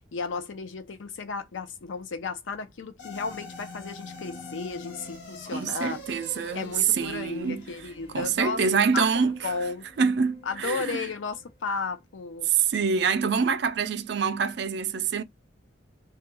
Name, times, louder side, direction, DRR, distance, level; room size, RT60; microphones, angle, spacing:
voice 1, 0.1-6.0 6.5-8.6 8.9-9.9 10.5-12.5, left 4 dB, 75° left, 0.5 m, -34 dB
sound 1, 3.0-11.5, left 3 dB, 55° left, 0.9 m, -45 dB
voice 2, 5.5-7.6 8.1-9.5 10.0-11.0 12.4-15.2, right 6 dB, 60° right, 0.4 m, -25 dB
2.3 x 2.2 x 2.9 m
head